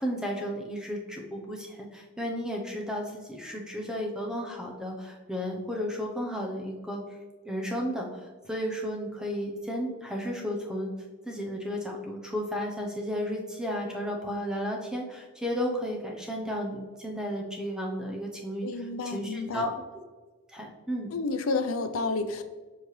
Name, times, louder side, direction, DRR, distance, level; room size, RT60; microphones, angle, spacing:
voice 1, 0.0-7.0 7.4-10.9 11.2-19.7 20.5-21.1, equal, 5° right, 0 dB, 0.8 m, -33 dB
voice 2, 18.6-19.7 21.1-22.4, left 3 dB, 90° left, 9 dB, 0.6 m, -30 dB
7.2 x 4.8 x 3.2 m, 1.3 s
head